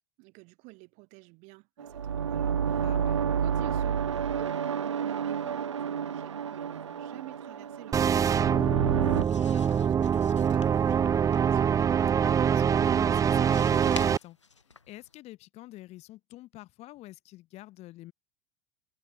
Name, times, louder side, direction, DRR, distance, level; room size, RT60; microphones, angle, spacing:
voice 1, 0.2-4.6 5.0-11.7, right 28 dB, 55° right, 6.5 m, -50 dB
sound 1, 1.8-9.2, right 7 dB, 85° right, 0.8 m, -30 dB
voice 2, 2.8-3.2 12.2-14.4 14.7-18.1, left 17 dB, 45° left, 2.0 m, -46 dB
sound 2, 7.9-14.2, right 8 dB, 20° right, 0.5 m, -24 dB
sound 3, 9.0-15.2, left 4 dB, 85° left, 6.3 m, -49 dB
figure-of-eight pair, 80°, 15 cm